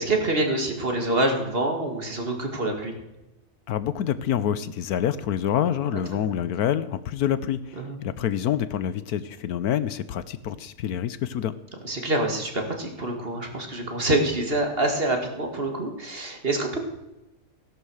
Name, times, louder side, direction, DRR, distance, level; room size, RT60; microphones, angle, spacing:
voice 1, 0.0-3.0 7.8-8.0 11.8-16.8, right 2 dB, 35° right, 3 dB, 2.4 m, -26 dB
voice 2, 3.7-11.5, left 10 dB, 75° left, 15 dB, 1.2 m, -27 dB
16.5 x 11.0 x 6.4 m, 0.97 s
omnidirectional pair, 1.7 m